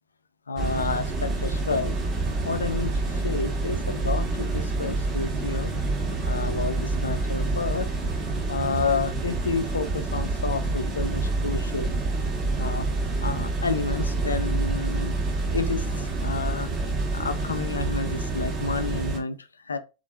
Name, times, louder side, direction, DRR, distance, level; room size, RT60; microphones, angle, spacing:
voice 1, 0.5-2.0 2.4-5.7 6.2-7.9 8.5-11.9 12.6-12.9 13.2-15.2 15.5-16.7 17.1-19.8, left 4 dB, 75° left, 0.5 m, -30 dB
sound 1, 0.6-19.2, right 3 dB, 35° right, 1.6 m, -27 dB
3.8 x 3.7 x 2.5 m
figure-of-eight pair, 90°, 0 cm